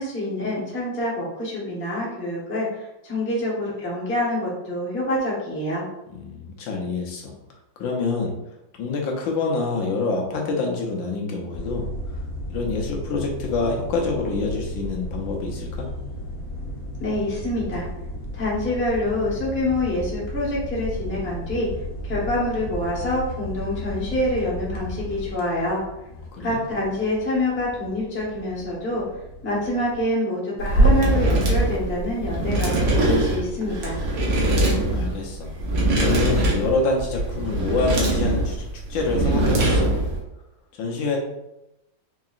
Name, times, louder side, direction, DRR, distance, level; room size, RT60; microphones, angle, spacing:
voice 1, 0.0-5.9 17.0-17.9 18.3-21.7 22.0-25.8 26.4-29.0 29.4-34.0, left 1 dB, 10° left, -5 dB, 0.6 m, -26 dB
voice 2, 6.1-7.3 7.8-8.3 8.8-12.2 12.5-15.9 26.1-26.6 34.4-35.5 36.0-38.6 38.9-39.9 40.7-41.2, left 3 dB, 85° left, 0 dB, 1.5 m, -27 dB
sound 1, 11.5-30.0, left 1 dB, 60° left, 1.2 m, -34 dB
sound 2, 30.6-40.2, right 1 dB, 55° right, 1.2 m, -22 dB
4.7 x 2.8 x 2.4 m, 0.91 s
omnidirectional pair, 2.0 m